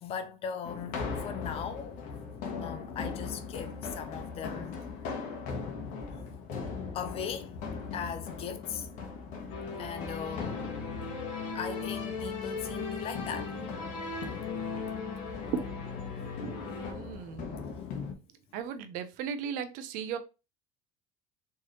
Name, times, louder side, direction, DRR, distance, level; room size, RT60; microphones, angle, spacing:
voice 1, 0.0-2.0 2.6-4.7 6.1-6.2 6.9-7.5 7.9-8.9 9.8-10.7 11.5-13.5, left 7 dB, 40° left, 0.6 m, -39 dB
sound 1, 0.6-18.1, left 5 dB, 55° left, 1.2 m, -40 dB
sound 2, 9.5-16.9, left 4 dB, 75° left, 2.3 m, -38 dB
voice 2, 16.2-17.5 18.5-20.2, right 7 dB, 60° right, 0.7 m, -37 dB
4.5 x 3.1 x 3.1 m
cardioid pair, 145°, 15 cm